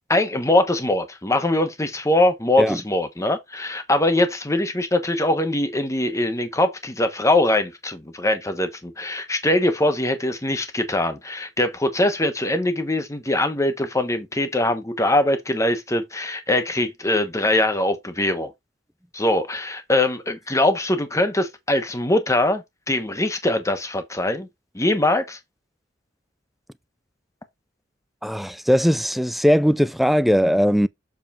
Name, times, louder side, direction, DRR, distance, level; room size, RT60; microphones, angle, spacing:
voice 1, 0.1-18.5 19.1-24.5 24.7-25.4, left 1 dB, 15° left, 1.2 m, -22 dB
voice 2, 28.2-30.9, equal, ahead, 0.3 m, -19 dB
7.4 x 3.8 x 4.4 m
head